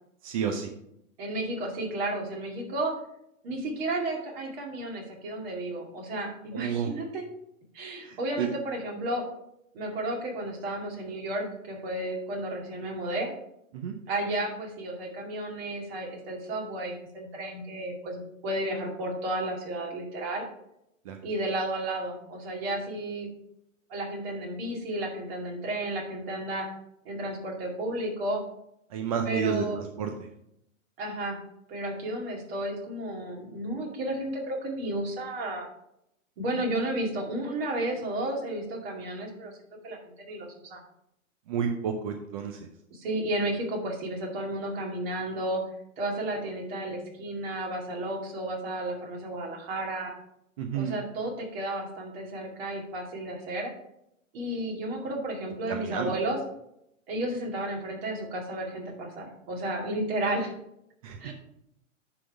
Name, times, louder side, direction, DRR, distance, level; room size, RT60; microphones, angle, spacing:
voice 1, 0.2-0.7 6.5-6.9 8.0-8.5 13.7-13.9 21.1-21.2 28.9-30.1 41.5-42.7 50.6-51.0 55.7-56.2 61.0-61.2, right 7 dB, 30° right, 5 dB, 0.4 m, -30 dB
voice 2, 1.2-2.9 3.4-7.2 7.7-9.2 9.7-13.3 14.1-20.5 21.2-23.3 23.9-26.7 27.0-28.4 29.3-29.8 31.0-31.4 31.7-35.7 36.4-39.5 39.8-40.8 42.9-45.6 46.0-50.1 50.7-53.7 54.3-56.4 57.1-60.5 61.2-61.3, right 1 dB, 45° right, 0 dB, 2.4 m, -32 dB
9.9 x 3.9 x 4.6 m, 0.79 s
hypercardioid pair, 140°, 41 cm